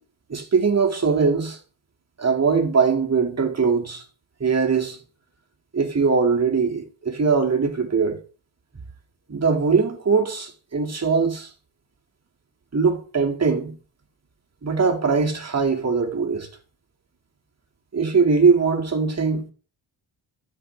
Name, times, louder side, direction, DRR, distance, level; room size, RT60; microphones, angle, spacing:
voice 1, 0.3-1.6 2.2-4.0 4.4-5.0 5.7-8.2 9.3-11.5 12.7-13.7 14.6-16.5 17.9-19.5, right 5 dB, 30° right, 2.0 m, -21 dB
13.0 x 5.2 x 3.2 m
cardioid pair, 70°, 48 cm